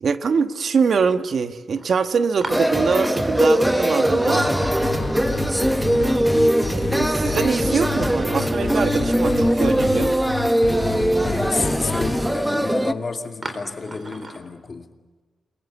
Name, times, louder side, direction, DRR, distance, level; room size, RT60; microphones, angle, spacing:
voice 1, 0.0-4.5 6.7-10.3, right 5 dB, 60° right, 9 dB, 1.3 m, -23 dB
sound 1, 0.9-1.0 1.7-1.9 2.4-5.3 5.6-5.7 7.1-7.8 8.3-8.4 9.0-9.1 13.4-14.4, right 2 dB, 35° right, 4.1 m, -37 dB
sound 2, 2.5-12.9, right 1 dB, 5° right, 1.1 m, -21 dB
sound 3, 4.2-12.1, left 6 dB, 75° left, 3.4 m, -30 dB
voice 2, 4.3-5.1 11.2-14.9, left 4 dB, 40° left, 5 dB, 2.4 m, -31 dB
28.5 x 22.5 x 7.1 m, 1.3 s
cardioid pair, 95°, 0 cm